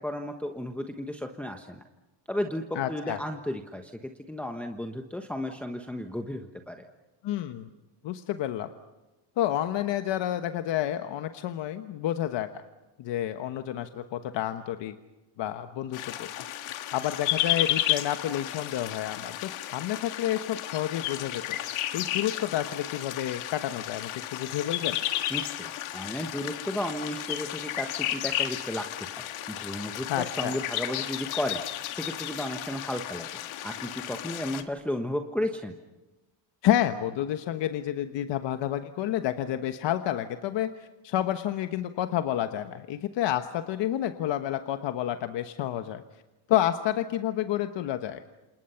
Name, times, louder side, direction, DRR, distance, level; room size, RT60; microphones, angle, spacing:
voice 1, 0.0-1.8 2.3-6.8 25.3-28.9 29.2-31.6 32.0-33.3 33.6-35.7, left 1 dB, 5° left, 3 dB, 1.2 m, -34 dB
voice 2, 2.7-3.2 7.2-7.7 8.0-8.7 9.4-12.5 13.0-14.9 15.4-16.3 16.9-21.6 21.9-25.0 30.1-30.5 36.6-46.0 46.5-48.2, left 12 dB, 60° left, 8 dB, 1.2 m, -29 dB
sound 1, 15.9-34.6, left 13 dB, 85° left, 1.8 m, -33 dB
28.5 x 28.0 x 5.8 m, 1.1 s
cardioid pair, 135°, 49 cm